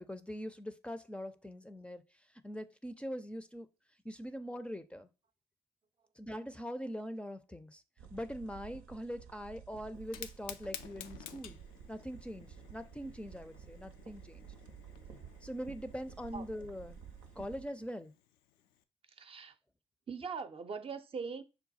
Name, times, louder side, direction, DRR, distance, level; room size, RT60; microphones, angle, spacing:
voice 1, 0.0-2.0 2.4-3.7 4.0-5.1 6.2-7.8 8.1-11.6 11.9-14.5 15.4-17.0 17.4-18.1, equal, 5° left, 0.5 m, -42 dB
sound 1, 8.0-17.7, right 7 dB, 75° right, 0.7 m, -53 dB
Fire, 10.0-18.8, left 10 dB, 75° left, 0.4 m, -53 dB
voice 2, 19.1-19.6 20.1-21.4, right 5 dB, 40° right, 0.6 m, -41 dB
5.8 x 2.2 x 4.0 m
hypercardioid pair, 45°, 15 cm